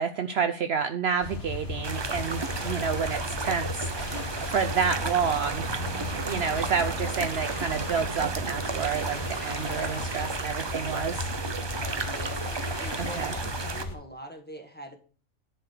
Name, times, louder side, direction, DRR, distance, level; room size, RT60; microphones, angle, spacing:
voice 1, 0.0-3.9 4.4-5.9 6.3-11.3 13.0-13.3, right 6 dB, 60° right, 8 dB, 0.8 m, -29 dB
sound 1, 1.2-14.0, left 2 dB, 50° left, 1.8 m, -36 dB
sound 2, 1.8-13.8, right 4 dB, 30° right, 0.5 m, -34 dB
sound 3, 1.8-13.7, right 5 dB, 90° right, 1.4 m, -43 dB
voice 2, 11.9-15.0, equal, 10° left, 3 dB, 1.3 m, -44 dB
10.0 x 4.4 x 6.6 m, 0.40 s
omnidirectional pair, 1.4 m